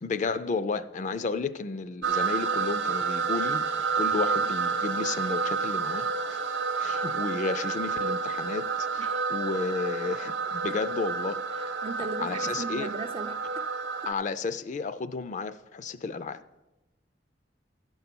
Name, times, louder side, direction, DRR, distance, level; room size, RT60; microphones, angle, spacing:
voice 1, 0.0-3.7 4.0-6.4 6.8-11.4 12.0-12.9 14.1-16.4, left 4 dB, 40° left, 0.4 m, -32 dB
sound 1, 2.0-14.1, right 5 dB, 75° right, 0.6 m, -29 dB
voice 2, 11.8-13.7, right 3 dB, 30° right, 0.4 m, -38 dB
12.5 x 5.4 x 6.0 m
head